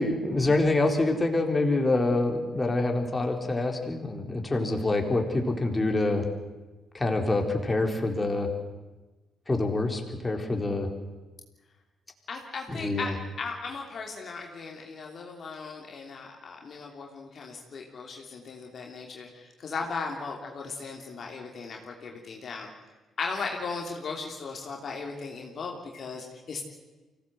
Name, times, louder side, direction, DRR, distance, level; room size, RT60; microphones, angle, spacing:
voice 1, 0.0-6.2 6.9-8.5 9.5-10.9 12.7-13.1, left 2 dB, 25° left, 3 dB, 4.0 m, -26 dB
voice 2, 12.3-22.7 23.2-26.6, left 4 dB, 55° left, 1 dB, 3.0 m, -37 dB
24.5 x 17.0 x 8.0 m, 1.2 s
hypercardioid pair, 45°, 0 cm